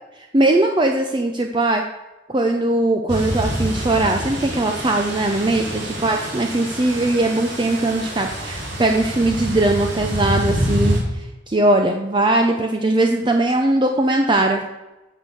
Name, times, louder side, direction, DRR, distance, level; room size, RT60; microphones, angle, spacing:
voice 1, 0.3-1.8 2.3-14.6, right 2 dB, 25° right, 4 dB, 0.7 m, -20 dB
sound 1, 3.1-11.0, equal, 85° right, 3.9 m, -26 dB
9.3 x 6.5 x 6.9 m, 1.1 s
head